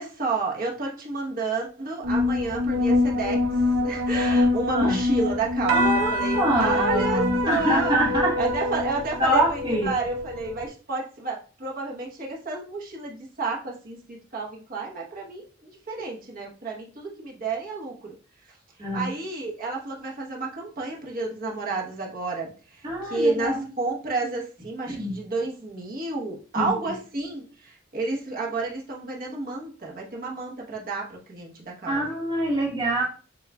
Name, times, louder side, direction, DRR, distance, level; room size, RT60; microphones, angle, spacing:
voice 1, 0.0-3.5 3.8-8.0 8.4-18.2 18.9-32.0, right 3 dB, 50° right, 1.0 m, -31 dB
sound 1, 2.0-10.7, left 2 dB, 80° right, 0.7 m, -25 dB
voice 2, 5.7-8.3 9.2-9.9 15.9-16.0 18.8-19.1 22.8-23.6 24.9-25.1 26.5-26.7 31.9-33.0, right 1 dB, 25° right, 1.2 m, -25 dB
7.0 x 2.4 x 2.2 m
head